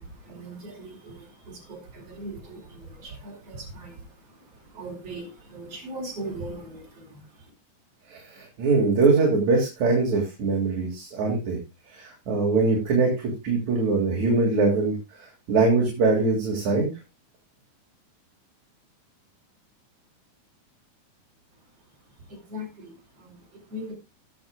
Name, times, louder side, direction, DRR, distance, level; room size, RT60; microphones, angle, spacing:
voice 1, 0.0-7.5 22.3-23.9, right 1 dB, 45° right, -1 dB, 4.8 m, -40 dB
voice 2, 8.1-11.6 11.9-16.9, right 3 dB, 60° right, -1 dB, 3.3 m, -23 dB
18.5 x 7.4 x 2.3 m, 0.25 s
omnidirectional pair, 3.7 m